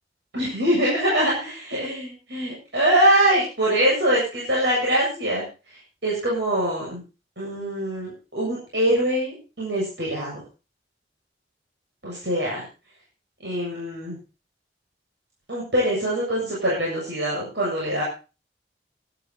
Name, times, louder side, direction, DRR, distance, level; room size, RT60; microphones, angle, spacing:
voice 1, 0.3-5.4 6.0-7.0 7.4-10.4 12.0-12.6 13.4-14.2 15.5-18.0, right 1 dB, 80° right, -5 dB, 7.8 m, -23 dB
13.5 x 13.0 x 4.2 m, 0.33 s
head